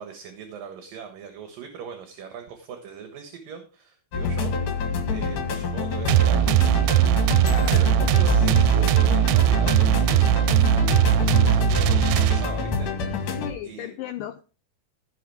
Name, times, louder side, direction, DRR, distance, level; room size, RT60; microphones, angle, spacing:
voice 1, 0.0-13.9, right 7 dB, 65° right, 6 dB, 2.9 m, -41 dB
sound 1, 4.1-13.5, left 3 dB, 55° left, 3.2 m, -26 dB
sound 2, 6.1-12.8, right 13 dB, 85° right, 2.7 m, -20 dB
voice 2, 7.5-7.9 13.4-14.4, left 12 dB, 80° left, 10 dB, 2.0 m, -35 dB
16.0 x 6.2 x 4.7 m, 0.36 s
omnidirectional pair, 4.6 m